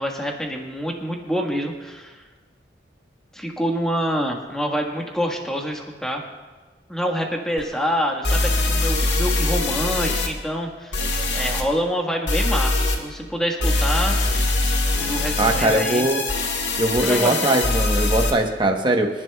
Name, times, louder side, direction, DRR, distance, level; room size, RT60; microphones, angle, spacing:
voice 1, 0.0-2.2 3.3-6.2 6.9-11.0 11.3-14.2 15.0-16.0 17.0-17.6, equal, 5° left, 0 dB, 1.4 m, -26 dB
sound 1, 7.6-7.7 8.2-10.3 10.9-11.6 12.3-13.0 13.6-18.3, left 2 dB, 85° left, 1.7 m, -22 dB
voice 2, 15.4-16.2 16.8-19.1, right 2 dB, 25° right, 3 dB, 1.0 m, -20 dB
26.5 x 11.0 x 2.3 m, 1.3 s
head